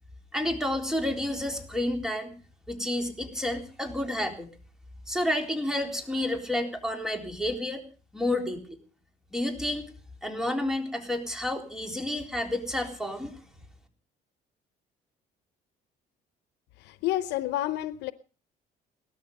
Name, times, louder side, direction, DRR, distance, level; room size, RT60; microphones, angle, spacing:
voice 1, 0.3-2.3 2.7-4.5 5.1-7.8 8.1-8.8 9.3-9.9 10.2-13.3, left 1 dB, 5° right, 3.9 m, -30 dB
voice 2, 16.8-18.1, left 14 dB, 85° left, 0.8 m, -29 dB
17.5 x 13.0 x 5.4 m
cardioid pair, 110°, 17 cm